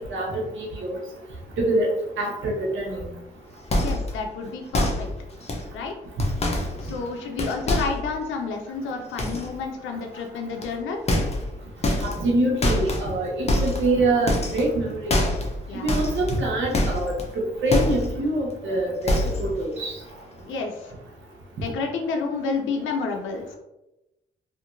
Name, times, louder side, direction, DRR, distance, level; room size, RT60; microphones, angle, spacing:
voice 1, 0.1-1.0 1.6-1.9 2.2-3.1 12.0-15.2 15.7-19.1 19.4-19.9, right 2 dB, 70° right, -1 dB, 0.8 m, -25 dB
sound 1, 3.7-4.2 4.7-5.1 5.4-5.7 6.2-8.1 9.2-9.5 10.6-10.7 11.1-11.5 11.8-12.3 12.6-13.1 13.5-14.0 14.3-14.8 15.1-15.6 15.9-17.3 17.7-18.2 18.5-18.6 19.0-19.5 19.8-20.1 20.4-20.5, left 1 dB, 30° left, 0.6 m, -25 dB
voice 2, 3.8-5.1 5.7-5.9 6.8-11.0 15.7-15.9 20.5-20.9 21.6-23.5, left 4 dB, 70° left, 3 dB, 0.5 m, -30 dB
2.7 x 2.5 x 2.5 m, 0.93 s
supercardioid pair, 55°, 21 cm